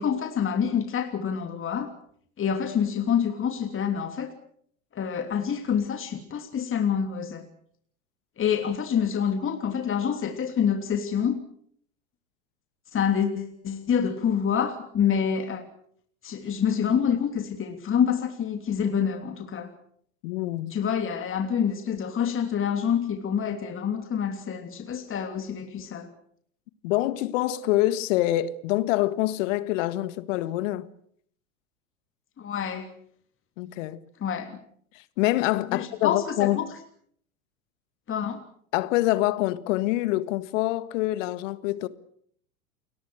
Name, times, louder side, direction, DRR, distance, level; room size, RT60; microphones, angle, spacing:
voice 1, 0.0-1.9 2.4-4.3 4.9-7.4 8.4-11.4 12.9-15.6 16.2-19.7 20.7-26.1 32.4-32.9 34.2-34.6 35.7-36.6 38.1-38.4, left 8 dB, 30° left, 3.1 m, -27 dB
voice 2, 20.2-20.8 26.8-30.9 33.6-34.0 34.9-36.6 38.7-41.9, left 16 dB, 60° left, 1.7 m, -25 dB
30.0 x 22.0 x 6.5 m
hypercardioid pair, 90°, 44 cm